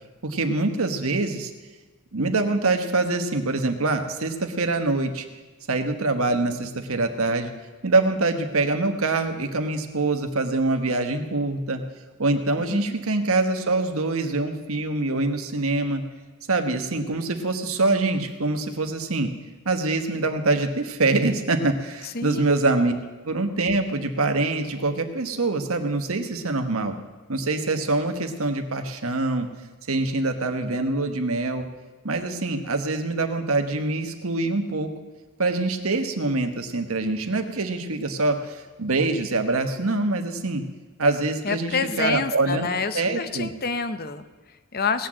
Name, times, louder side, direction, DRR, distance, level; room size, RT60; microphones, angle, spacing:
voice 1, 0.2-1.5 2.1-5.2 5.7-7.5 7.8-11.8 12.2-16.0 16.5-19.3 19.6-22.9 23.2-27.0 27.3-29.5 29.9-31.7 32.0-34.9 35.4-40.6 41.0-42.7 42.9-43.5, right 2 dB, 70° right, 6 dB, 1.3 m, -24 dB
voice 2, 12.6-12.9 22.0-22.5 41.4-45.1, left 4 dB, 45° left, 11 dB, 0.8 m, -28 dB
18.5 x 6.3 x 7.6 m, 1.3 s
head